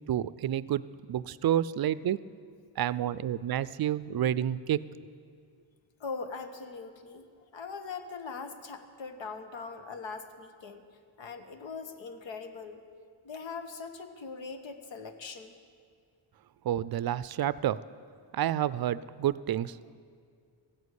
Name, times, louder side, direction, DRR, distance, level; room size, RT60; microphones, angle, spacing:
voice 1, 0.1-0.8 1.1-2.2 2.8-4.9 16.6-17.8 18.3-20.0, right 11 dB, 55° right, 18 dB, 0.5 m, -29 dB
voice 2, 6.0-7.3 7.5-10.8 11.2-12.8 13.2-15.5, left 4 dB, 75° left, 7 dB, 1.3 m, -41 dB
14.5 x 9.6 x 8.3 m, 2.1 s
cardioid pair, 90°, 46 cm